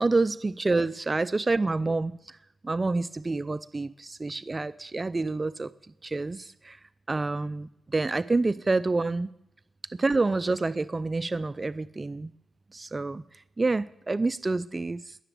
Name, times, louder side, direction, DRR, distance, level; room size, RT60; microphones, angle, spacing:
voice 1, 0.0-2.4 2.6-5.7 6.0-6.8 7.1-9.3 9.9-12.3 12.7-15.2, right 3 dB, 30° right, 16 dB, 0.5 m, -28 dB
20.5 x 6.9 x 9.4 m, 0.86 s
cardioid pair, 65°, 0 cm